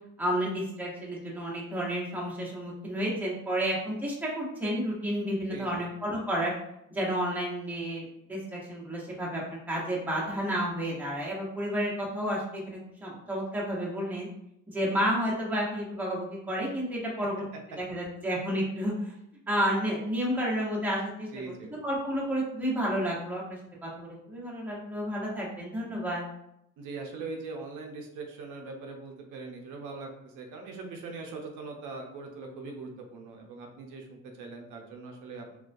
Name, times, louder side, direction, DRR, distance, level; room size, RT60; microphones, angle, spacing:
voice 1, 0.2-6.5 6.9-9.4 9.7-14.3 14.7-17.4 17.8-19.1 19.5-21.3 21.7-26.2, equal, 5° right, -5 dB, 0.9 m, -31 dB
voice 2, 5.5-5.9 17.2-17.3 21.3-21.7 26.8-35.6, right 3 dB, 85° right, 2 dB, 0.5 m, -41 dB
2.2 x 2.2 x 2.5 m, 0.78 s
cardioid pair, 90°, 30 cm